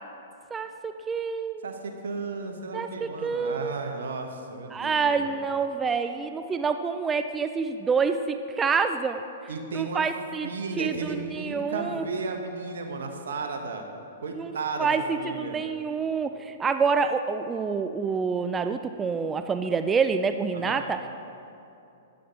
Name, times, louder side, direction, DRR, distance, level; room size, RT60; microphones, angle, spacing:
voice 1, 0.5-1.7 2.7-3.7 4.7-9.3 9.7-10.5 10.8-12.1 14.3-14.5 14.8-21.0, right 5 dB, 15° right, 9 dB, 0.3 m, -27 dB
voice 2, 1.6-5.3 9.5-10.0 10.4-13.8 14.2-14.9 15.2-15.6 20.5-20.8, right 4 dB, 75° right, 4 dB, 1.1 m, -34 dB
10.0 x 7.6 x 4.0 m, 2.8 s
hypercardioid pair, 125°, 0 cm